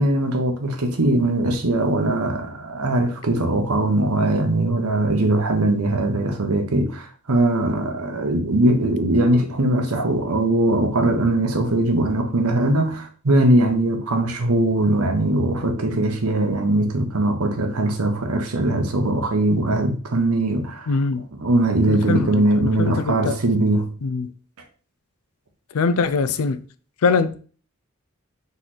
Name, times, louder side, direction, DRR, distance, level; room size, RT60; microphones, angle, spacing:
voice 1, 0.0-20.9 21.4-23.9, right 1 dB, 85° right, 0.9 m, -20 dB
voice 2, 20.9-21.2 21.9-23.4 24.0-24.3 25.7-26.6 27.0-27.4, left 4 dB, 80° left, 0.4 m, -22 dB
4.0 x 3.1 x 4.0 m
head